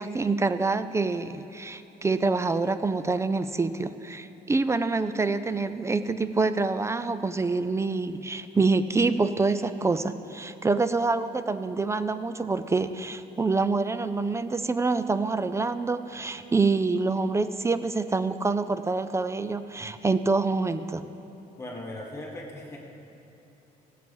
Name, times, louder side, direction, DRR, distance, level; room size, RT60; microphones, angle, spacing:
voice 1, 0.0-21.1, right 3 dB, 15° right, 12 dB, 0.4 m, -26 dB
voice 2, 21.6-22.8, left 1 dB, 15° left, -2 dB, 1.8 m, -38 dB
15.5 x 7.5 x 5.5 m, 2.9 s
cardioid pair, 110°, 17 cm